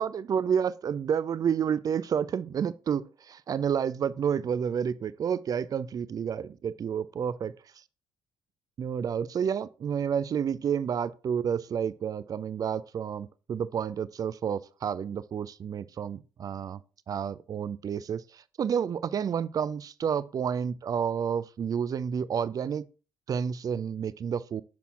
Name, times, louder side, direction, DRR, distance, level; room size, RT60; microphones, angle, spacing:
voice 1, 0.0-7.5 8.8-16.8 17.1-22.9 23.3-24.6, right 7 dB, 35° right, 0.3 m, -30 dB
6.7 x 5.9 x 2.4 m
figure-of-eight pair, 45°, 11 cm